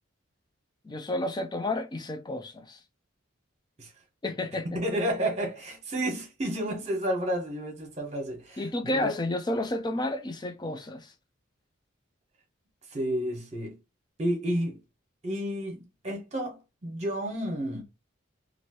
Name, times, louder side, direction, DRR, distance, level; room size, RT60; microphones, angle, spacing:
voice 1, 0.8-2.8 4.2-4.7 8.6-11.1, left 1 dB, 20° left, 0.4 m, -31 dB
voice 2, 4.7-8.6 8.9-9.1 12.9-13.8 14.2-14.8 15.2-17.8, equal, 35° right, 1.1 m, -31 dB
2.9 x 2.6 x 2.9 m
head